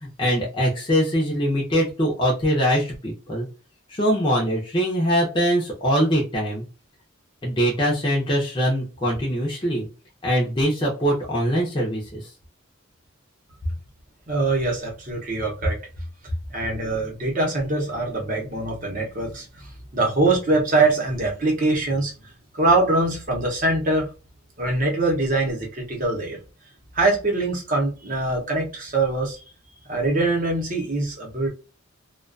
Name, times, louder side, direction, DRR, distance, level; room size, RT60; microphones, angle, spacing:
voice 1, 0.0-3.5 3.9-6.6 7.4-9.9 10.2-12.3, equal, 20° left, -3 dB, 0.5 m, -22 dB
voice 2, 14.3-15.8 16.5-24.1 24.6-26.4 26.9-29.4 29.9-31.5, right 2 dB, 40° right, -1 dB, 0.8 m, -23 dB
2.4 x 2.2 x 2.5 m, 0.33 s
head